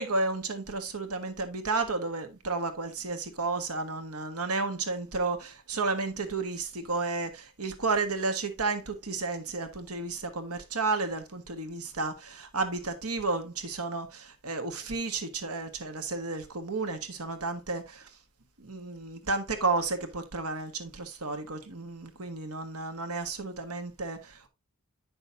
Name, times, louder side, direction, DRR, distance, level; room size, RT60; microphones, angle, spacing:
voice 1, 0.0-18.1 18.6-24.5, right 3 dB, 85° right, 1.4 m, -32 dB
9.9 x 6.4 x 2.6 m
head